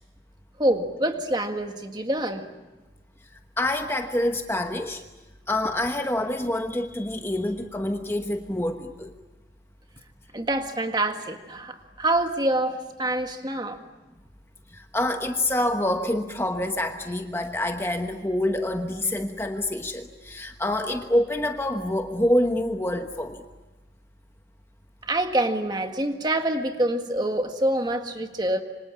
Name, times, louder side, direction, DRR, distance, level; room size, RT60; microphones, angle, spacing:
voice 1, 0.6-2.4 10.3-13.8 25.0-28.6, right 1 dB, 25° right, 5 dB, 1.8 m, -26 dB
voice 2, 3.6-5.0 5.5-9.1 14.7-23.4, left 1 dB, 15° left, 5 dB, 1.1 m, -26 dB
27.0 x 25.5 x 8.5 m, 1.1 s
head